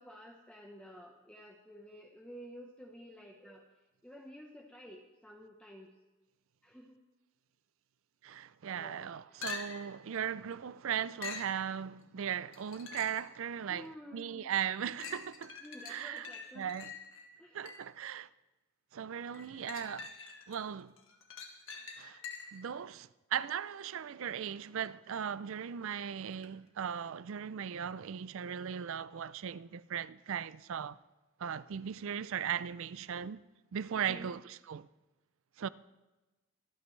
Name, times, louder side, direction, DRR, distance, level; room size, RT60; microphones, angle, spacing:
voice 1, 0.0-3.7 4.0-5.9 6.6-7.0 8.8-9.4 13.7-14.5 15.6-16.7 17.4-17.7 33.9-34.4, equal, 5° left, 1.0 m, -51 dB
voice 2, 8.2-15.6 15.9-16.3 16.6-16.9 17.5-18.3 18.9-20.1 20.5-20.9 22.0-22.2 22.5-31.0 31.4-33.4 33.7-34.9 35.6-35.7, right 8 dB, 60° right, 0.4 m, -38 dB
sound 1, 9.4-10.0 11.2-11.6 12.5-13.3 13.9-14.0 15.0-18.0 19.3-20.6 21.0-22.7 26.4-26.5, left 5 dB, 65° left, 1.7 m, -45 dB
24.0 x 9.3 x 3.3 m
head